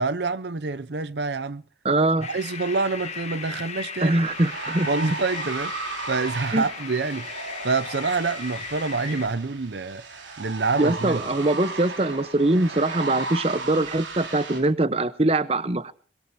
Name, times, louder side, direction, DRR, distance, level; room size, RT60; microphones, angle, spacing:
voice 1, 0.0-1.6 2.3-4.2 4.9-10.1 10.4-11.4, right 4 dB, 70° right, 0.7 m, -27 dB
voice 2, 1.8-2.3 4.0-4.9 6.5-6.6 10.8-15.9, right 2 dB, 30° right, 0.8 m, -22 dB
sound 1, 2.2-9.3, left 6 dB, 35° left, 1.3 m, -37 dB
sound 2, 4.2-14.6, right 3 dB, 90° right, 4.9 m, -35 dB
23.0 x 22.0 x 2.7 m
head